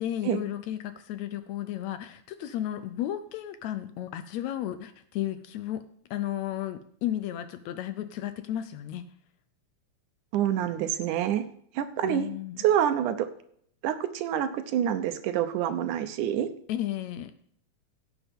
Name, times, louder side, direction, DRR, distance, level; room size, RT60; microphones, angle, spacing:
voice 1, 0.0-5.8 6.1-9.1 12.0-12.6 16.7-17.3, left 12 dB, 75° left, 11 dB, 1.7 m, -33 dB
voice 2, 10.3-11.4 11.8-12.3 12.6-13.3 13.8-16.5, right 10 dB, 80° right, 9 dB, 2.3 m, -27 dB
17.0 x 7.2 x 3.6 m, 0.67 s
omnidirectional pair, 3.6 m